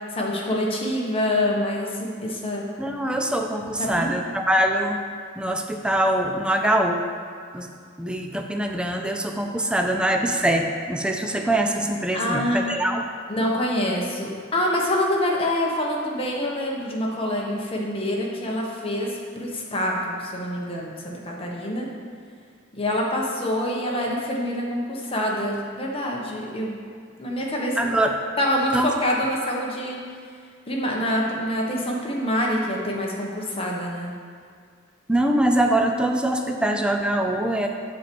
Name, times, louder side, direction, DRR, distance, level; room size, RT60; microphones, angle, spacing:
voice 1, 0.1-2.7 3.8-4.1 12.1-12.7 13.3-21.9 22.7-26.8 27.2-27.8 28.4-30.0 30.7-34.1, left 1 dB, 30° left, -2 dB, 1.2 m, -26 dB
voice 2, 2.8-5.0 5.4-7.0 7.5-7.7 8.0-13.1 27.8-28.1 28.7-28.9 35.1-37.7, right 1 dB, 5° right, 3 dB, 0.4 m, -23 dB
7.6 x 4.5 x 6.9 m, 2.1 s
head